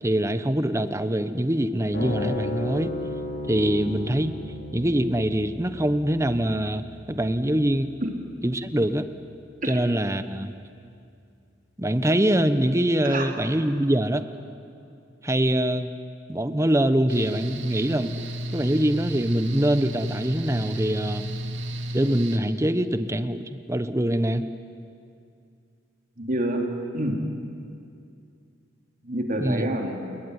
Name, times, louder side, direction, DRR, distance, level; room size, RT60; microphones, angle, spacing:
voice 1, 0.0-2.9 3.5-4.3 4.7-7.9 8.4-9.1 9.6-10.5 11.8-14.2 15.2-15.9 16.3-18.1 18.5-21.3 21.9-24.5 29.4-29.7, right 1 dB, 15° right, 10 dB, 1.1 m, -24 dB
sound 1, 1.9-8.6, left 2 dB, 65° left, 6.2 m, -35 dB
Mechanical fan, 17.1-22.4, right 1 dB, 80° right, 2.3 m, -32 dB
voice 2, 26.2-26.6 26.9-27.2 29.0-30.2, right 1 dB, 45° right, 2 dB, 3.6 m, -27 dB
28.5 x 21.5 x 9.9 m, 2.5 s
head